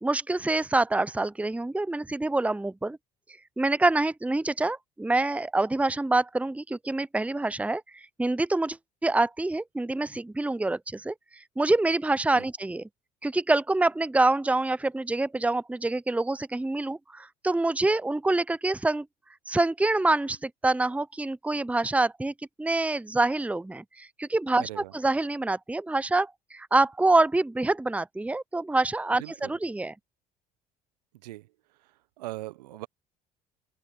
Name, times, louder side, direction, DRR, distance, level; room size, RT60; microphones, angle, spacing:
voice 1, 0.0-3.0 3.6-11.1 11.6-12.8 13.2-19.1 19.5-22.3 22.6-29.9, right 2 dB, 5° right, 0.8 m, -26 dB
voice 2, 24.6-24.9 29.2-29.5 31.2-31.5 31.8-32.9, right 18 dB, 75° right, 1.3 m, -40 dB
open air
figure-of-eight pair, 55°, 21 cm